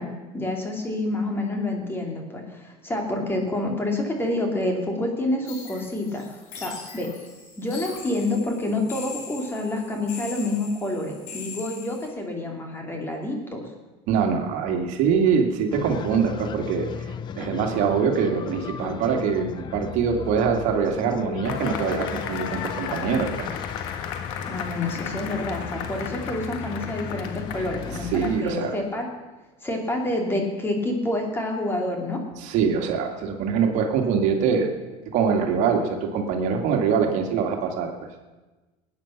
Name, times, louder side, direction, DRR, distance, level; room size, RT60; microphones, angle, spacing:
voice 1, 0.0-6.2 6.6-7.1 7.6-13.7 24.5-29.1 29.6-32.2, left 2 dB, 15° left, 2 dB, 3.0 m, -28 dB
sound 1, 5.5-12.1, left 5 dB, 60° left, 3.5 m, -41 dB
voice 2, 14.1-23.5 28.1-28.7 32.4-34.7 35.1-37.9, right 6 dB, 60° right, 3 dB, 2.2 m, -24 dB
sound 2, 15.7-28.4, left 8 dB, 35° left, 0.6 m, -36 dB
Cheering / Applause / Crowd, 21.4-28.7, left 8 dB, 80° left, 1.6 m, -35 dB
20.0 x 9.4 x 5.9 m, 1.2 s
supercardioid pair, 125°, 14 cm